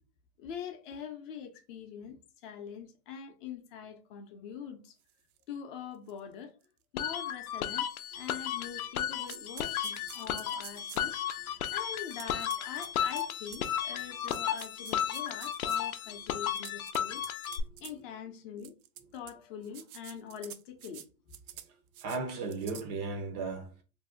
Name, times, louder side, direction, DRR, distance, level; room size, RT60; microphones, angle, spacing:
voice 1, 0.4-5.0 5.5-6.6 6.9-17.2 17.8-18.7 19.1-21.1, left 7 dB, 40° left, 0.5 m, -44 dB
sound 1, 5.4-5.5 6.1-6.2 6.6-6.7 7.7-7.8 8.3-8.8 9.2-11.2 12.1-13.7 14.2-16.0 16.4-17.9 18.6-19.3 19.6-21.1 21.3-21.7 21.9-22.2 22.5-22.8, right 11 dB, 85° right, 0.5 m, -48 dB
sound 2, 7.0-17.6, left 10 dB, 85° left, 0.6 m, -34 dB
voice 2, 17.5-17.8 21.6-23.8, right 4 dB, 30° right, 0.4 m, -37 dB
2.6 x 2.1 x 3.5 m
hypercardioid pair, 130°, 42 cm